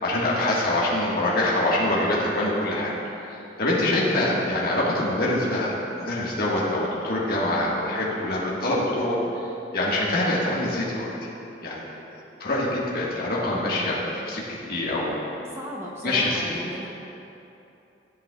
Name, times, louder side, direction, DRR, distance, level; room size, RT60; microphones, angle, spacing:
voice 1, 0.0-2.9 3.6-5.7 6.0-9.2 9.7-11.1 11.6-11.8 12.4-14.0 14.3-15.2 16.0-16.5, left 1 dB, 55° left, -6 dB, 1.6 m, -24 dB
voice 2, 15.5-16.9, equal, 15° right, -3 dB, 0.7 m, -35 dB
14.0 x 8.2 x 2.4 m, 2.9 s
head